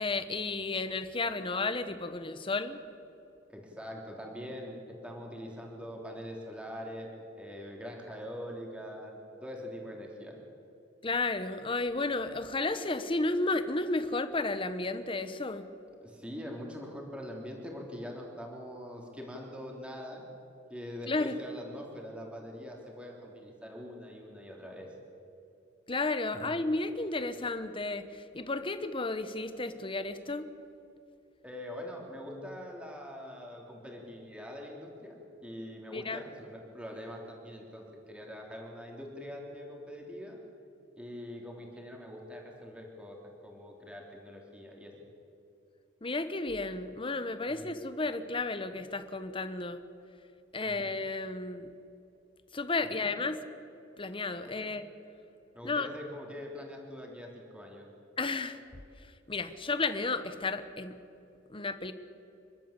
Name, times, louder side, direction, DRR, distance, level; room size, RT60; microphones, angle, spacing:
voice 1, 0.0-2.8 11.0-15.7 21.1-21.4 25.9-30.5 35.9-36.2 46.0-49.8 50.5-51.7 52.5-53.4 54.0-54.8 55.6-55.9 58.2-58.6 59.0-61.0 61.5-61.9, left 3 dB, 30° left, 11 dB, 1.1 m, -33 dB
voice 2, 3.5-7.1 7.3-10.4 16.0-20.3 20.7-24.9 26.3-26.5 31.4-35.1 35.4-40.4 40.9-43.2 43.4-44.9 47.5-47.7 50.6-50.9 52.8-53.1 54.4-54.6 55.5-57.9, equal, 5° right, 0 dB, 3.3 m, -43 dB
28.5 x 12.0 x 8.3 m, 2.7 s
head